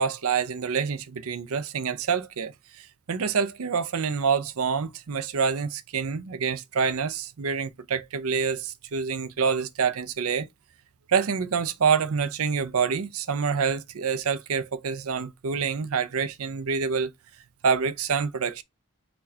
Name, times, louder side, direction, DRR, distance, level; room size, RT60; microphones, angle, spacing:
voice 1, 0.0-10.5 11.1-17.1 17.6-18.6, right 6 dB, 75° right, 0.6 m, -27 dB
4.3 x 2.8 x 4.2 m
head